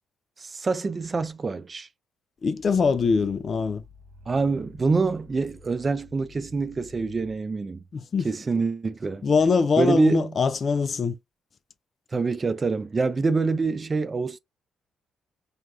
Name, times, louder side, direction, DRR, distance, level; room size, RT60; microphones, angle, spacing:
voice 1, 0.4-1.9 4.3-7.8 8.2-9.2 9.8-10.4 12.1-14.4, right 4 dB, 30° right, 0.4 m, -26 dB
voice 2, 2.4-3.8 7.9-8.3 9.2-11.2, left 5 dB, 45° left, 0.3 m, -23 dB
Growling, 2.5-7.4, left 2 dB, 90° right, 0.6 m, -50 dB
3.3 x 2.3 x 2.4 m
cardioid pair, 90°, 0 cm